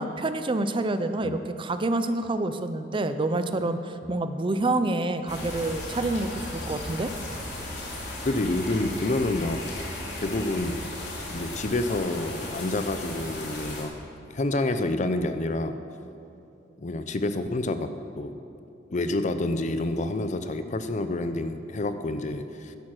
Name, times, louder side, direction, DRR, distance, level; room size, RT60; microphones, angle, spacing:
voice 1, 0.0-7.1, right 2 dB, 30° right, 10 dB, 0.5 m, -27 dB
sound 1, 5.3-13.8, left 1 dB, 65° left, 2.7 m, -36 dB
voice 2, 8.2-9.6 10.2-10.8 11.3-13.9 14.3-15.8 16.8-18.3 18.9-22.8, left 2 dB, 40° left, 10 dB, 0.6 m, -28 dB
11.5 x 9.7 x 6.2 m, 2.7 s
head